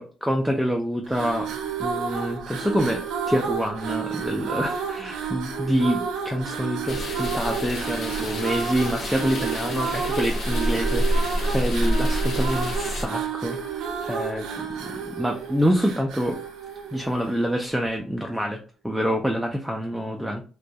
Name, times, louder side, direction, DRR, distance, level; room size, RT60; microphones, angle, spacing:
voice 1, 0.0-16.4 16.9-20.4, equal, 5° right, 2 dB, 0.3 m, -27 dB
sound 1, 1.0-17.5, right 7 dB, 85° right, 0.4 m, -31 dB
sound 2, 6.9-13.1, equal, 65° left, 0.7 m, -27 dB
2.2 x 2.2 x 2.6 m, 0.37 s
cardioid pair, 90°, 0 cm